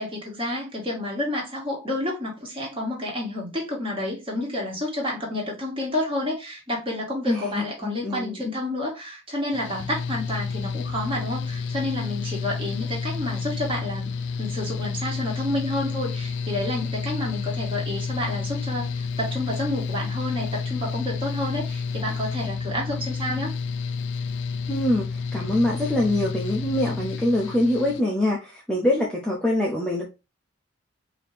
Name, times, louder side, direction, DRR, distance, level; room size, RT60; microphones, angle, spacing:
voice 1, 0.0-23.5, left 1 dB, 25° right, 1.6 m, -30 dB
voice 2, 7.3-8.5 24.7-30.1, left 1 dB, 5° left, 0.7 m, -24 dB
Mechanical fan, 9.5-28.0, left 5 dB, 60° left, 0.4 m, -30 dB
4.8 x 2.9 x 3.3 m
head